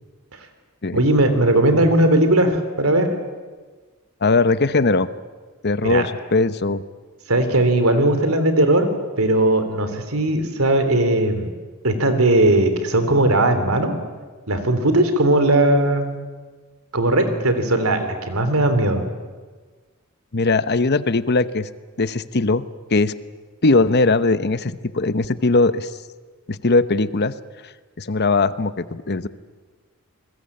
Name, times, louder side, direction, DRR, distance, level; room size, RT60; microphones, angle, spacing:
voice 1, 0.9-3.1 5.8-6.0 7.3-8.9 9.2-11.5 11.8-14.0 14.5-16.2 16.9-19.0, right 1 dB, 85° right, 9 dB, 3.5 m, -18 dB
voice 2, 4.2-5.1 5.6-6.8 20.3-21.7 22.0-22.6 22.9-23.1 23.6-25.9 26.5-27.3 28.0-29.3, left 3 dB, 50° left, 13 dB, 1.0 m, -19 dB
28.0 x 21.0 x 8.7 m, 1.4 s
head